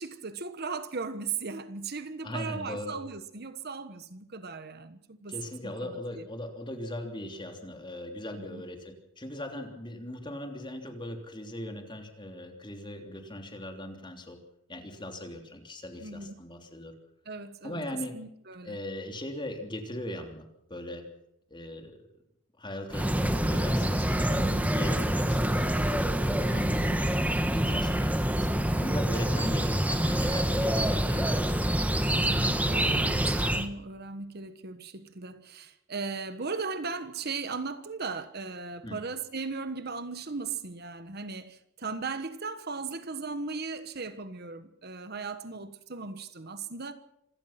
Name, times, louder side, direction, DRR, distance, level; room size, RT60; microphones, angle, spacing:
voice 1, 0.0-5.4 5.6-6.2 8.4-8.6 16.0-16.3 17.2-17.8 18.1-18.8 26.3-26.6 32.2-46.9, right 4 dB, 50° right, 1.3 m, -37 dB
voice 2, 2.2-3.0 5.3-14.4 14.7-16.9 17.6-18.1 18.6-21.1 21.5-22.1 22.6-25.8 26.4-31.7 38.8-39.0, left 1 dB, 25° left, 3.2 m, -39 dB
sound 1, 22.9-33.7, right 1 dB, 5° right, 1.3 m, -26 dB
26.5 x 17.5 x 6.0 m
head